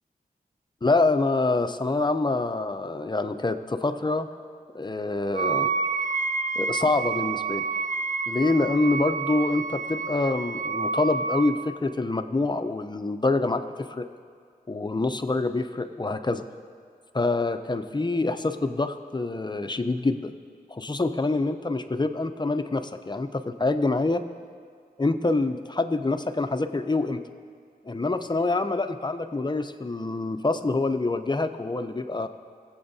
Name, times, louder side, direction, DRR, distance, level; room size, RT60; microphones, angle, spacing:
voice 1, 0.8-4.3 4.7-5.7 6.6-7.6 8.3-14.1 14.7-16.4 17.1-20.3 20.7-24.2 25.0-27.2 27.8-32.3, left 3 dB, 30° left, 8 dB, 0.6 m, -26 dB
Wind instrument woodwind instrument, 5.3-11.7, right 4 dB, 55° right, 0.5 m, -29 dB
20.5 x 7.9 x 2.8 m, 2.1 s
wide cardioid pair, 60°, 16 cm